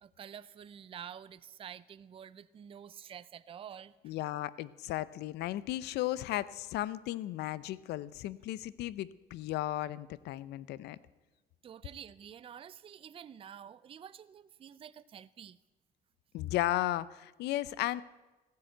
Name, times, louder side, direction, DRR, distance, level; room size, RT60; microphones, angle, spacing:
voice 1, 0.0-4.1 11.6-15.6, right 8 dB, 35° right, 16 dB, 0.5 m, -49 dB
voice 2, 4.0-11.0 16.3-18.0, left 15 dB, 80° left, 18 dB, 0.6 m, -35 dB
15.5 x 10.5 x 7.8 m, 1.1 s
cardioid pair, 110°, 17 cm